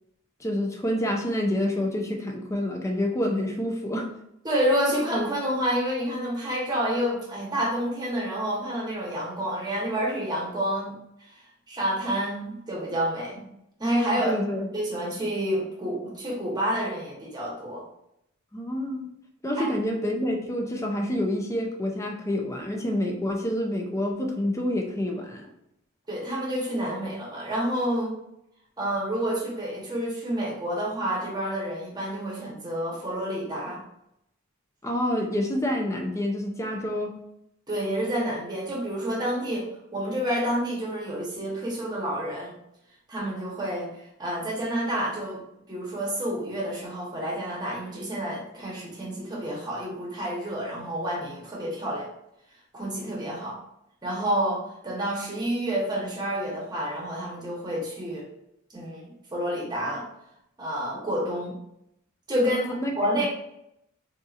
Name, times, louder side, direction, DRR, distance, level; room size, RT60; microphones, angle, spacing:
voice 1, 0.4-4.1 14.1-14.7 18.5-19.1 19.4-25.5 34.8-37.2 62.4-62.9, left 1 dB, 15° left, 2 dB, 0.4 m, -28 dB
voice 2, 4.4-11.0 11.3-11.4 11.7-13.5 13.8-14.3 14.7-17.8 19.6-19.7 26.1-28.2 28.8-33.8 37.7-42.5 43.1-45.4 45.7-52.1 52.7-53.6 54.0-58.2 58.7-60.0 60.6-61.6 62.3-62.6 63.0-63.3, equal, 20° right, -4 dB, 1.0 m, -29 dB
3.7 x 2.7 x 2.4 m, 0.79 s
head